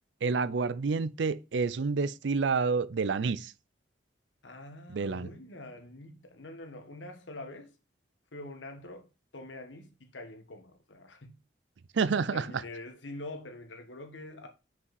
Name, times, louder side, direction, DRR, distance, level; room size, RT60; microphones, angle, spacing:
voice 1, 0.2-3.5 4.9-5.3 11.9-12.6, right 4 dB, 75° right, 0.5 m, -29 dB
voice 2, 4.4-7.7 8.3-11.4 12.3-14.5, left 2 dB, 85° left, 1.4 m, -45 dB
5.7 x 5.2 x 4.0 m
head